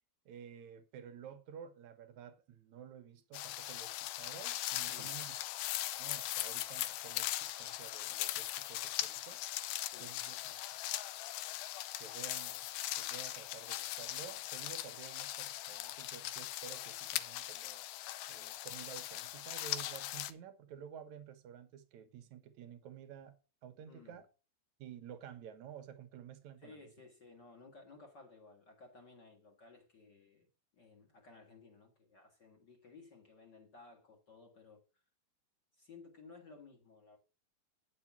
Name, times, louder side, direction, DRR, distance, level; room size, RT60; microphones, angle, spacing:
voice 1, 0.3-5.3 6.0-9.4 10.0-10.4 12.0-12.7 13.0-17.9 18.3-24.3 24.8-26.8, right 8 dB, 65° right, 2.1 m, -52 dB
sound 1, 3.3-20.3, left 15 dB, 85° left, 2.6 m, -40 dB
voice 2, 9.9-10.6 23.9-24.2 26.6-30.5 30.7-35.0 35.7-37.2, left 4 dB, 35° left, 2.0 m, -57 dB
9.7 x 6.7 x 5.9 m
omnidirectional pair, 4.2 m